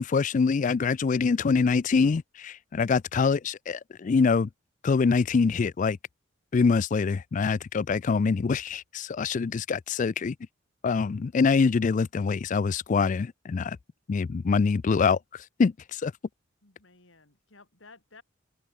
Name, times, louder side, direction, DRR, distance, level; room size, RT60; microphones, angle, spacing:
voice 1, 0.0-4.5 4.8-6.0 6.5-10.4 10.8-13.8 14.1-16.1, left 5 dB, 40° left, 0.3 m, -25 dB
voice 2, 16.6-18.2, left 3 dB, 85° left, 4.5 m, -54 dB
head